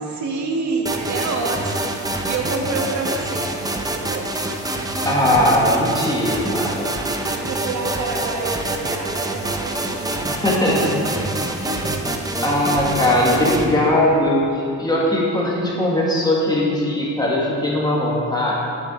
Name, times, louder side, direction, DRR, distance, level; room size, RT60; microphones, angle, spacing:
voice 1, 0.0-3.5 3.9-4.3 7.3-11.2, right 3 dB, 70° right, 1 dB, 1.4 m, -28 dB
sound 1, 0.9-13.7, right 2 dB, 10° right, 0.7 m, -26 dB
voice 2, 5.1-6.9 10.2-11.0 11.3-11.9 12.4-18.5, left 1 dB, 15° left, -5 dB, 1.8 m, -20 dB
8.1 x 7.2 x 4.3 m, 2.5 s
cardioid pair, 90°, 30 cm